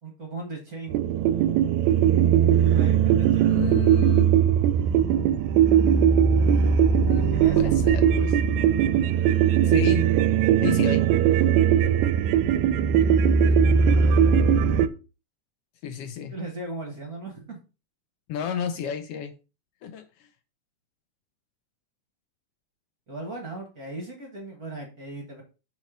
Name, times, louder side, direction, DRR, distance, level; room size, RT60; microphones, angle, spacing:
voice 1, 0.0-1.0 2.7-3.5 7.2-7.7 13.6-14.6 16.3-17.6 23.1-25.4, right 2 dB, 40° right, 1 dB, 1.4 m, -38 dB
sound 1, 0.9-14.9, right 8 dB, 85° right, 1.9 m, -20 dB
voice 2, 3.4-4.3 7.0-8.4 9.6-10.1 10.6-11.0 15.8-16.4 18.3-19.3 19.8-20.1, left 8 dB, 80° left, 9 dB, 1.3 m, -31 dB
6.1 x 4.2 x 5.0 m, 0.32 s
omnidirectional pair, 3.4 m